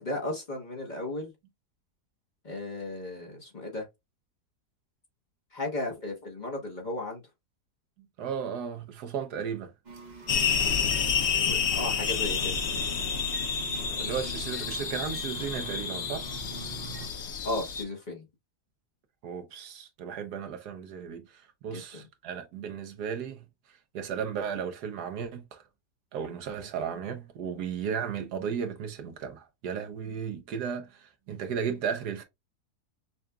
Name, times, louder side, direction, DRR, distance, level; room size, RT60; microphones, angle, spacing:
voice 1, 0.0-1.3 2.4-3.9 5.5-7.2 11.3-12.5 17.4-18.2 21.7-21.8, left 2 dB, 35° left, 1.1 m, -35 dB
voice 2, 8.2-9.7 11.8-12.3 13.9-16.3 19.2-23.4 23.9-25.6 26.1-32.2, right 7 dB, 85° right, 1.3 m, -35 dB
sound 1, 9.8-17.1, right 3 dB, 40° right, 0.7 m, -45 dB
sound 2, 10.3-17.8, left 6 dB, 60° left, 0.7 m, -29 dB
5.6 x 2.5 x 2.3 m
omnidirectional pair, 1.7 m